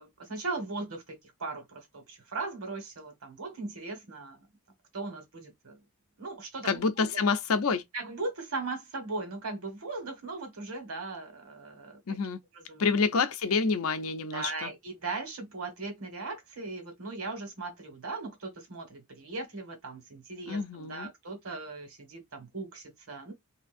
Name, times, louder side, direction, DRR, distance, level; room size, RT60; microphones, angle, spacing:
voice 1, 0.0-4.4 4.9-5.8 6.2-6.7 7.0-7.1 7.9-12.0 12.7-12.9 14.3-23.3, right 3 dB, 70° right, 1.5 m, -38 dB
voice 2, 6.6-7.8 12.1-12.4 12.8-14.7 20.5-21.1, left 4 dB, 65° left, 0.5 m, -28 dB
3.4 x 2.8 x 2.5 m
head